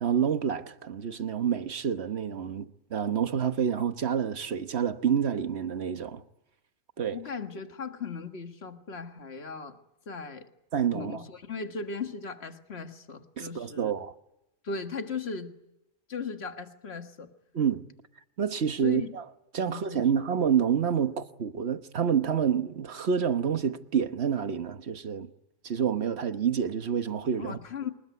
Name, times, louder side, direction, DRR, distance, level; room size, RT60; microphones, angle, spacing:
voice 1, 0.0-6.2 7.0-7.2 10.7-11.2 13.4-14.1 17.5-17.8 18.4-19.2 19.5-25.3 25.6-27.6, right 7 dB, 55° right, 1.3 m, -28 dB
voice 2, 7.1-9.8 10.1-10.5 10.9-13.9 14.6-15.5 16.1-17.3 18.8-19.1 19.7-20.3 27.4-27.9, left 5 dB, 55° left, 1.9 m, -37 dB
26.5 x 20.5 x 9.4 m
omnidirectional pair, 1.3 m